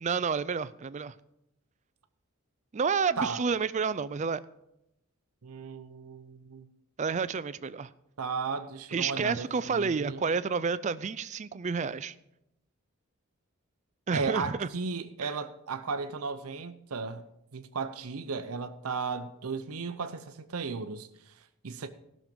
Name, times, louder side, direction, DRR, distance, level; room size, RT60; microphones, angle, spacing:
voice 1, 0.0-1.2 2.7-4.4 7.0-7.9 8.9-12.1 14.1-14.7 15.2-15.3, right 5 dB, 35° right, 0.4 m, -30 dB
voice 2, 5.4-6.7 8.2-10.3 14.1-21.1 21.6-21.9, right 4 dB, 90° right, 0.7 m, -35 dB
16.0 x 6.5 x 5.2 m
head